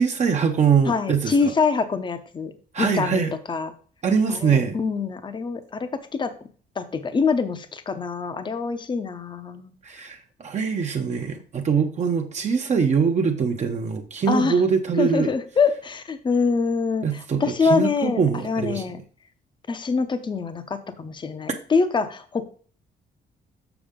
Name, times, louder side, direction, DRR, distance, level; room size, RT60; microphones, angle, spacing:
voice 1, 0.0-1.5 2.7-3.3 4.0-4.8 9.8-15.3 17.0-18.8 21.5-21.6, right 6 dB, 40° right, 4 dB, 0.8 m, -23 dB
voice 2, 0.9-2.5 2.8-3.7 4.4-5.9 6.2-6.3 6.8-9.7 14.3-14.6 15.0-19.0 19.7-22.4, left 4 dB, 25° left, 10 dB, 0.7 m, -25 dB
7.0 x 6.3 x 3.7 m, 0.43 s
cardioid pair, 135°, 18 cm